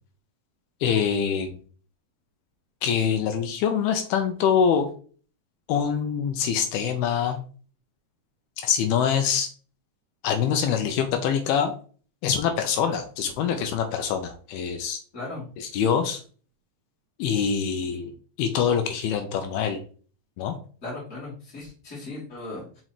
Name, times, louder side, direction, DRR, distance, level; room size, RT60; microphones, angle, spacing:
voice 1, 0.8-1.6 2.8-4.9 5.7-7.4 8.6-9.5 10.2-11.7 12.2-15.0 15.6-16.2 17.2-18.1 18.4-19.8 20.4-20.6, left 7 dB, 80° left, 6 dB, 2.5 m, -24 dB
voice 2, 15.1-15.5 20.8-22.8, left 2 dB, 20° left, -9 dB, 2.6 m, -37 dB
5.8 x 5.2 x 3.1 m, 0.40 s
omnidirectional pair, 5.0 m